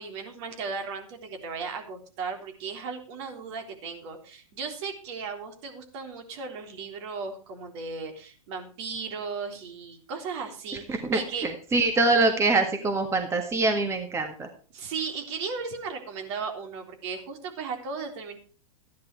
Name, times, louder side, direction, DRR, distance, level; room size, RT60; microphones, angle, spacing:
voice 1, 0.0-11.5 14.7-18.4, right 5 dB, 55° right, 4 dB, 3.7 m, -36 dB
voice 2, 10.9-14.5, right 3 dB, 15° right, 5 dB, 1.7 m, -24 dB
14.0 x 10.5 x 4.6 m, 0.38 s
hypercardioid pair, 120°, 18 cm